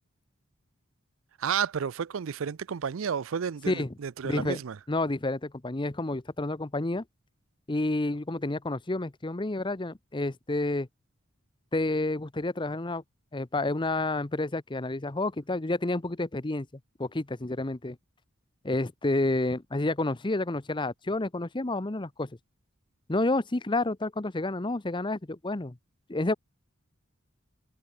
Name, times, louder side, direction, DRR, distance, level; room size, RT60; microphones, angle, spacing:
voice 1, 1.4-4.8, right 7 dB, 75° right, 0.5 m, -31 dB
voice 2, 4.2-4.6 4.9-7.0 7.7-10.9 11.7-13.0 13.3-16.7 17.0-18.0 18.6-22.3 23.1-25.8 26.1-26.3, left 2 dB, 25° left, 0.8 m, -29 dB
head